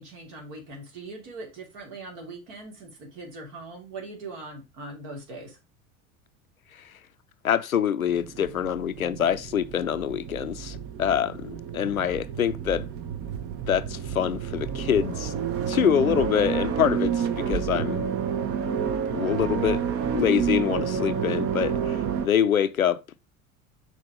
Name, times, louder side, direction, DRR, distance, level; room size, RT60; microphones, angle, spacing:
voice 1, 0.0-5.6, right 2 dB, 55° right, 3.0 m, -41 dB
voice 2, 7.4-12.8 13.7-15.3 15.7-18.1 19.1-19.8 20.1-23.0, left 9 dB, 90° left, 0.6 m, -25 dB
sound 1, 8.1-22.3, right 7 dB, 35° right, 0.9 m, -29 dB
6.2 x 4.5 x 4.9 m
figure-of-eight pair, 75°, 40 cm